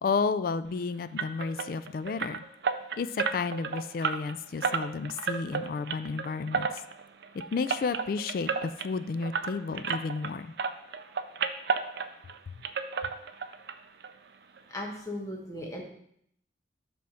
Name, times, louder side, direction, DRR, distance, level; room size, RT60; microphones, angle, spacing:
voice 1, 0.0-2.4 3.0-6.7 7.5-10.5, left 4 dB, 50° left, 13 dB, 0.3 m, -32 dB
sound 1, 1.2-10.3 10.6-12.4 12.6-13.7 14.0-14.1 14.6-14.7 15.0-15.1, right 5 dB, 60° right, 0.4 m, -32 dB
voice 2, 14.7-15.8, left 1 dB, 15° left, -1 dB, 1.2 m, -37 dB
7.6 x 3.5 x 5.7 m, 0.70 s
head